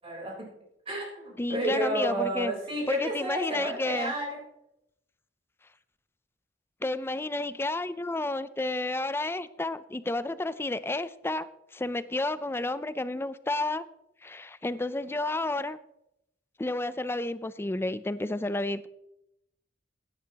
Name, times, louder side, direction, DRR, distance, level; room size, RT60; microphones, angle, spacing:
voice 1, 0.0-0.5 0.9-4.4, right 1 dB, 30° right, -3 dB, 3.8 m, -31 dB
voice 2, 1.4-2.5 2.9-4.1 6.8-13.8 14.2-15.8 16.6-18.9, left 2 dB, 15° left, 15 dB, 0.4 m, -31 dB
16.0 x 10.0 x 2.9 m, 0.83 s
head